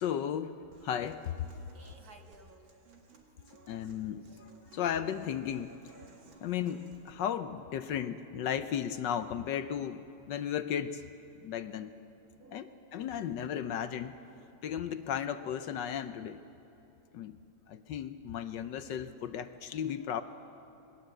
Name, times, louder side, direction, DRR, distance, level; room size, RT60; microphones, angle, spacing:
voice 1, 0.0-1.5 3.7-5.7 6.4-11.0 11.4-11.9 12.5-14.2 14.6-16.4 17.1-17.4 17.7-20.2, left 9 dB, 70° left, 10 dB, 1.3 m, -35 dB
Human voice / Acoustic guitar, 0.7-7.1, right 4 dB, 80° right, 2.6 m, -59 dB
voice 2, 1.7-2.7 4.2-4.4 10.4-10.5 12.4-13.0 14.3-14.6, right 3 dB, 50° right, 4 dB, 1.9 m, -58 dB
26.5 x 20.0 x 7.8 m, 2.8 s
omnidirectional pair, 2.1 m